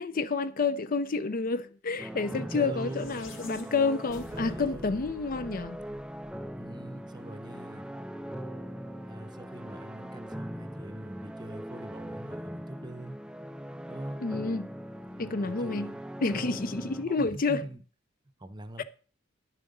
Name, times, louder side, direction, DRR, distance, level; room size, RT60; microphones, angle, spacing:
voice 1, 0.0-5.8 14.2-14.7 15.2-15.9 16.2-17.6 18.8-18.9, left 4 dB, 45° left, 0.5 m, -29 dB
sound 1, 2.0-17.0, equal, 5° right, 0.4 m, -41 dB
voice 2, 2.3-3.2 4.3-5.0 6.6-7.9 9.1-13.2 13.9-14.2 15.1-16.0 16.8-17.8 18.4-18.8, right 1 dB, 20° right, 0.8 m, -43 dB
sound 2, 2.5-7.0, left 2 dB, 75° left, 2.1 m, -50 dB
10.5 x 7.4 x 5.4 m
head